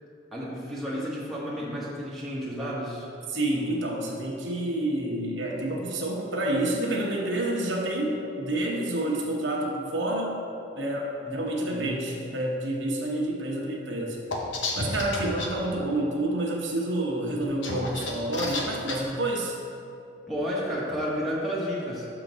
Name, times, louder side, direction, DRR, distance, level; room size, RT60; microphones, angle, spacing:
voice 1, 0.3-3.1 11.2-11.4 11.7-11.9 20.3-22.1, equal, ahead, -7 dB, 1.2 m, -31 dB
voice 2, 3.3-10.4 10.7-14.2 14.7-19.6, right 1 dB, 75° right, -1 dB, 1.0 m, -28 dB
sound 1, 14.3-15.5 17.4-19.0, left 2 dB, 75° left, 0.9 m, -31 dB
6.4 x 3.9 x 6.1 m, 2.6 s
head